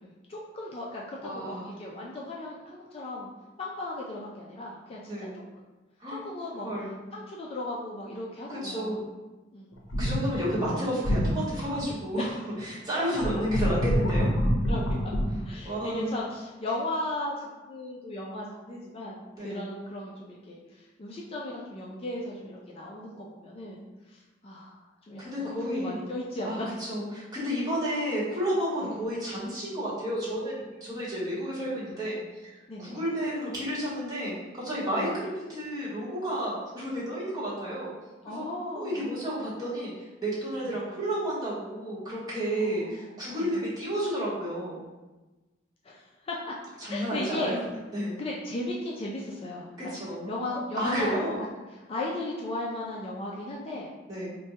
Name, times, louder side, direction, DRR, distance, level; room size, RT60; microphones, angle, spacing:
voice 1, 0.0-3.3 3.6-5.3 6.1-6.7 7.1-9.0 9.5-9.7 14.7-15.0 15.5-23.8 24.1-24.7 25.1-26.7 28.8-28.9 32.7-33.0 35.0-35.1 38.2-39.0 40.7-40.8 42.6-43.6 45.8-46.5 46.9-47.6 48.2-49.9 50.3-51.2 51.7-53.9, left 1 dB, 30° left, -3 dB, 0.4 m, -36 dB
voice 2, 1.2-1.6 5.1-5.3 6.0-6.2 6.6-6.9 8.5-9.0 10.0-14.3 15.6-16.1 19.4-19.7 25.2-25.9 26.4-37.9 38.3-38.4 38.7-44.9 46.8-47.6 47.9-48.1 49.8-50.3 50.7-51.4 54.1-54.4, equal, 20° right, -9 dB, 1.3 m, -31 dB
sound 1, 9.7-10.7 11.0-12.1 12.6-12.7 13.1-15.2, equal, 80° left, 0.6 m, -26 dB
4.3 x 2.2 x 2.7 m, 1.2 s
head